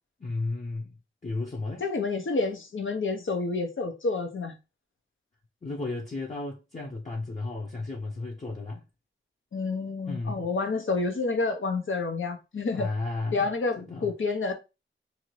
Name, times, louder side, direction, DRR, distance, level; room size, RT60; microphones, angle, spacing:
voice 1, 0.2-1.0 1.2-1.8 5.6-8.8 10.1-10.5 12.7-13.5 13.8-14.1, left 3 dB, 35° left, 0.8 m, -33 dB
voice 2, 1.8-4.5 9.5-12.9 13.3-14.5, left 3 dB, 70° left, 0.8 m, -29 dB
2.7 x 2.5 x 3.1 m
wide cardioid pair, 65°, 21 cm